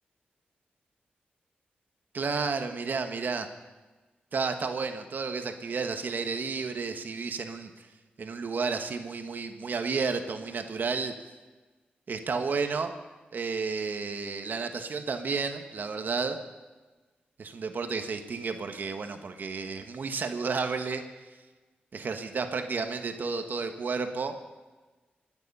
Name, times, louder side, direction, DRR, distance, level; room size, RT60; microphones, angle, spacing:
voice 1, 2.1-3.5 4.3-7.9 8.2-11.1 12.1-12.9 13.3-16.4 17.4-21.0 21.9-24.3, right 4 dB, 60° right, 7 dB, 1.4 m, -32 dB
24.0 x 9.8 x 5.5 m, 1.3 s
cardioid pair, 75°, 4 cm